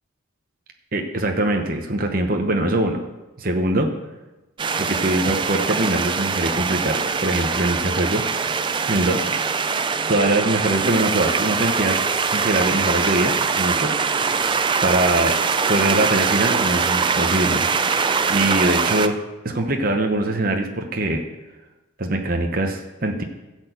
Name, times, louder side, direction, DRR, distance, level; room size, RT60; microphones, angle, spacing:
voice 1, 0.9-3.0 3.4-3.9 4.8-8.2 8.9-9.3 10.1-12.0 12.3-13.9 14.8-15.4 15.7-17.7 18.3-19.2 19.4-21.2 22.0-23.2, right 1 dB, 45° right, 3 dB, 0.9 m, -22 dB
sound 1, 4.6-19.1, right 5 dB, 25° right, 0.3 m, -22 dB
12.5 x 4.6 x 8.0 m, 1.1 s
head